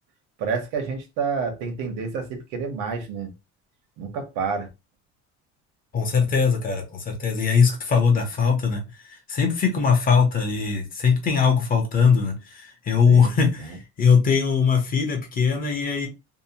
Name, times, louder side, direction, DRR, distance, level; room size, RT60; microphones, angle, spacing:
voice 1, 0.4-3.3 4.0-4.7 13.0-13.3, right 5 dB, 90° right, 0.9 m, -29 dB
voice 2, 5.9-8.8 9.3-16.1, left 6 dB, 30° left, 0.7 m, -21 dB
2.7 x 2.0 x 2.8 m
cardioid pair, 165°, 31 cm